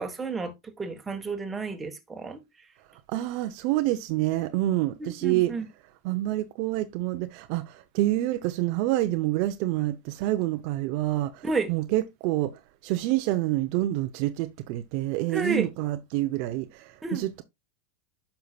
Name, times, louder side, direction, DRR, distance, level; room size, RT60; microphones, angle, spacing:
voice 1, 0.0-2.4 5.0-5.6 11.4-11.7 15.3-15.7 17.0-17.3, right 3 dB, 15° right, 1.6 m, -31 dB
voice 2, 3.1-5.5 6.0-17.4, right 16 dB, 55° right, 0.7 m, -27 dB
9.4 x 5.8 x 2.4 m
hypercardioid pair, 115°, 0 cm